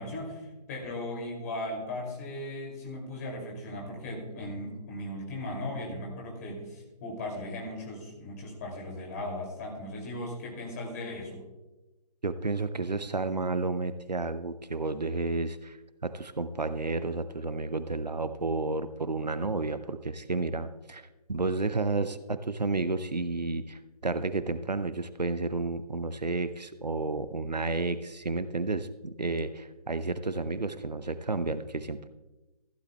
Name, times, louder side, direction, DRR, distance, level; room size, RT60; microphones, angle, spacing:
voice 1, 0.0-11.4, left 1 dB, 25° left, -1 dB, 2.6 m, -37 dB
voice 2, 12.2-15.8 16.0-21.0 21.3-32.1, right 3 dB, 80° right, 12 dB, 0.7 m, -31 dB
14.5 x 11.5 x 2.3 m, 1.1 s
figure-of-eight pair, 145°, 21 cm